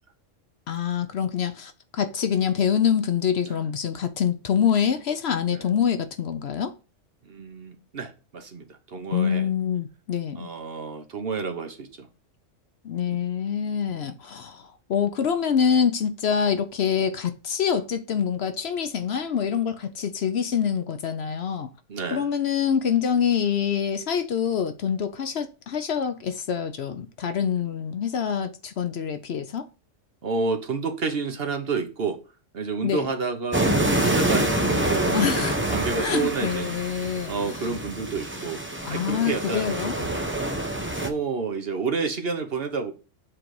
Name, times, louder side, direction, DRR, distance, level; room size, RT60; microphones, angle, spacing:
voice 1, 0.7-6.7 9.1-10.5 12.8-21.7 22.1-29.7 32.8-33.1 35.1-35.6 36.0-37.3 38.8-40.0, left 7 dB, 60° left, 0.9 m, -25 dB
voice 2, 7.2-9.5 10.3-12.1 13.1-13.2 14.0-14.1 21.9-22.3 30.2-32.2 32.5-36.8 37.3-38.6 38.9-40.3 41.0-42.9, right 4 dB, 50° right, 1.2 m, -30 dB
sound 1, 33.5-41.1, right 1 dB, 10° right, 0.9 m, -26 dB
7.6 x 3.9 x 4.8 m
omnidirectional pair, 1.3 m